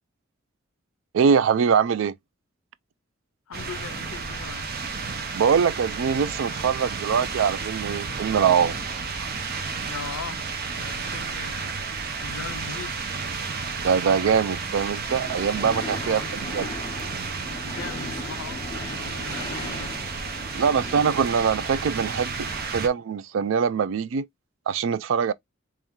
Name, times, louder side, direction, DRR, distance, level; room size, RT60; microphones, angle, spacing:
voice 1, 1.1-2.1 5.3-8.8 13.8-16.7 20.5-22.3 22.7-24.3 24.7-25.3, right 6 dB, 70° right, 0.3 m, -23 dB
voice 2, 3.5-4.7 9.9-10.4 10.7-11.8 12.2-13.0 16.0-16.3 17.8-20.0, left 6 dB, 90° left, 0.4 m, -39 dB
sound 1, 3.5-22.9, right 4 dB, 50° right, 0.7 m, -32 dB
sound 2, 15.0-23.0, left 3 dB, 25° left, 0.5 m, -40 dB
3.6 x 3.1 x 2.9 m
head